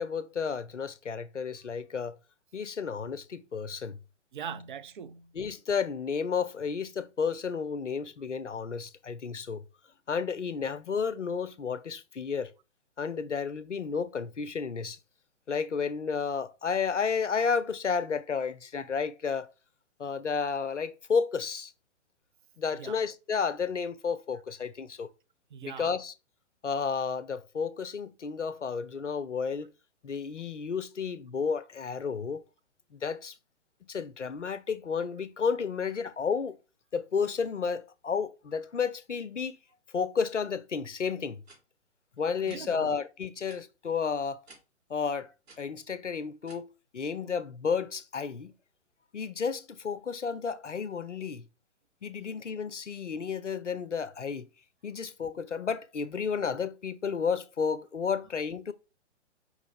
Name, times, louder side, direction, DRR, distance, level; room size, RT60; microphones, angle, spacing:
voice 1, 0.0-2.2 2.5-4.0 5.3-9.6 10.1-12.5 13.0-15.0 15.5-19.5 20.0-21.7 22.6-25.1 25.6-26.1 26.6-29.7 30.0-32.4 32.9-33.3 33.9-36.6 36.9-39.6 39.9-41.4 42.2-44.4 44.9-45.3 45.6-48.5 49.1-51.5 52.0-54.5 54.8-58.7, left 6 dB, 90° left, 0.6 m, -32 dB
voice 2, 4.3-5.3 22.7-22.9 25.5-25.9 42.5-43.0, right 7 dB, 45° right, 0.5 m, -41 dB
sound 1, 41.5-41.6 42.4-42.7 43.5-43.6 44.5-44.6 45.4-45.6 46.5-46.6, right 3 dB, 60° right, 2.5 m, -53 dB
4.9 x 3.2 x 3.2 m
figure-of-eight pair, 125°, 35 cm